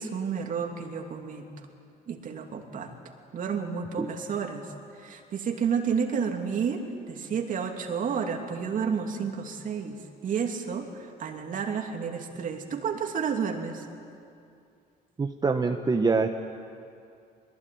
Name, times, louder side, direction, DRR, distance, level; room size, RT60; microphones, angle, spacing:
voice 1, 0.0-1.5 2.1-2.9 3.3-4.7 5.0-13.9, right 6 dB, 50° right, 4 dB, 2.8 m, -31 dB
voice 2, 15.2-16.3, right 4 dB, 25° right, 6 dB, 1.1 m, -25 dB
22.5 x 21.5 x 9.4 m, 2.4 s
cardioid pair, 110°, 17 cm